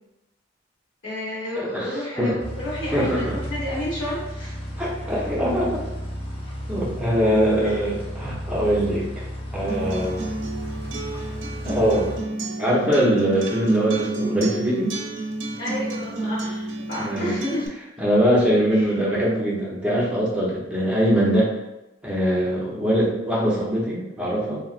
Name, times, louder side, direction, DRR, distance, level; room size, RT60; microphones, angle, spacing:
voice 1, 1.0-4.5 7.6-7.8 15.6-17.7 18.7-18.8, equal, 75° left, -9 dB, 1.4 m, -31 dB
voice 2, 1.6-2.4 2.9-3.4 4.8-5.8 6.7-9.2 9.5-10.3 11.6-12.1 12.6-14.9 17.0-17.4 18.0-21.5 22.0-24.6, equal, 5° right, -6 dB, 0.7 m, -22 dB
sound 1, 2.4-12.2, equal, 30° left, 0.7 m, -33 dB
Acoustic guitar, 9.7-17.7, right 2 dB, 80° right, 0.5 m, -30 dB
3.1 x 2.8 x 2.4 m, 0.95 s
head